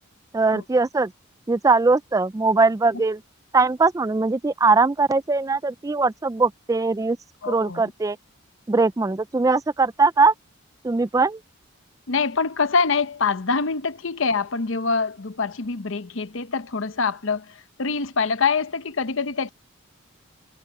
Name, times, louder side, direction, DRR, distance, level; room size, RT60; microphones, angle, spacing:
voice 1, 0.3-1.1 1.5-3.2 3.5-7.2 7.4-8.2 8.7-10.3 10.8-11.4, right 3 dB, 15° right, 0.3 m, -20 dB
voice 2, 7.4-7.9 12.1-19.5, left 4 dB, 65° left, 0.9 m, -25 dB
head